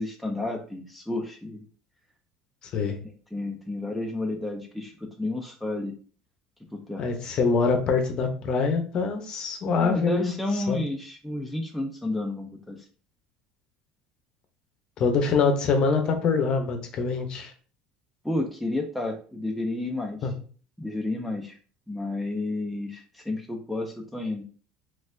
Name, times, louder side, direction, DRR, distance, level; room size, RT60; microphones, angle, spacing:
voice 1, 0.0-1.6 3.0-5.9 6.7-7.0 9.8-12.9 18.2-20.3 20.8-21.6 21.9-24.4, left 2 dB, ahead, 1 dB, 0.3 m, -31 dB
voice 2, 7.0-10.3 10.7-10.8 15.0-17.5 20.2-20.3, left 5 dB, 35° left, 6 dB, 0.6 m, -24 dB
4.1 x 2.4 x 2.5 m, 0.41 s
cardioid pair, 155°, 2 cm